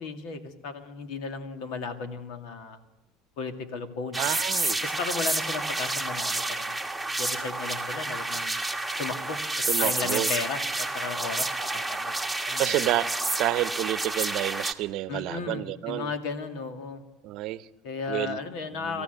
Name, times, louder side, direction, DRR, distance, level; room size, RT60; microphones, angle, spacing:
voice 1, 0.0-2.8 3.4-4.3 4.8-6.8 7.2-8.6 9.0-12.2 12.4-12.8 15.1-17.0 17.8-19.0, left 4 dB, 70° left, 2.3 m, -35 dB
sound 1, 4.1-14.7, right 2 dB, ahead, 1.5 m, -29 dB
voice 2, 4.2-4.8 9.7-10.3 12.6-13.1 13.4-16.1 17.2-17.7 18.1-18.4 18.7-19.0, right 15 dB, 60° right, 0.8 m, -29 dB
24.5 x 14.5 x 8.1 m
supercardioid pair, 110°, 0 cm